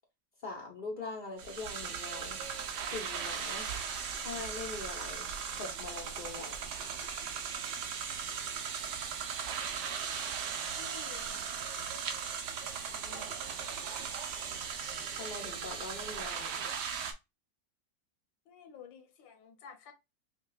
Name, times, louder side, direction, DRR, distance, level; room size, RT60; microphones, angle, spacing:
voice 1, 0.4-2.4 2.9-3.7 4.2-5.3 5.6-6.6 15.2-16.6, left 3 dB, 65° left, 0.5 m, -42 dB
sound 1, 1.4-17.1, right 7 dB, 70° right, 1.2 m, -38 dB
voice 2, 10.7-11.6 12.9-13.3 18.5-19.9, left 6 dB, 85° left, 1.5 m, -52 dB
5.2 x 2.3 x 2.2 m
omnidirectional pair, 2.0 m